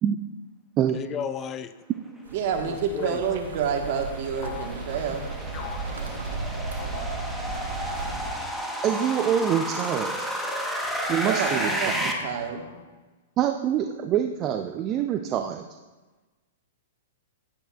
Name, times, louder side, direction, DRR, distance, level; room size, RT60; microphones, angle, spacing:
voice 1, 0.9-1.7 2.6-3.2, left 8 dB, 25° left, 12 dB, 0.4 m, -33 dB
voice 2, 2.3-5.3 11.2-12.7, right 6 dB, 55° right, 3 dB, 1.3 m, -28 dB
sound 1, 2.3-8.3, right 3 dB, 90° right, 1.1 m, -35 dB
sound 2, 2.6-12.1, equal, ahead, 1.1 m, -32 dB
sound 3, 4.4-4.7 5.5-5.9 6.8-7.1 7.9-8.2 9.1-9.4 10.8-11.3 12.2-12.9, left 7 dB, 45° left, 0.9 m, -42 dB
voice 3, 8.8-10.3 11.1-11.9 13.4-15.6, right 9 dB, 30° right, 6 dB, 0.5 m, -25 dB
10.0 x 8.9 x 2.3 m, 1.2 s
hypercardioid pair, 125°, 0 cm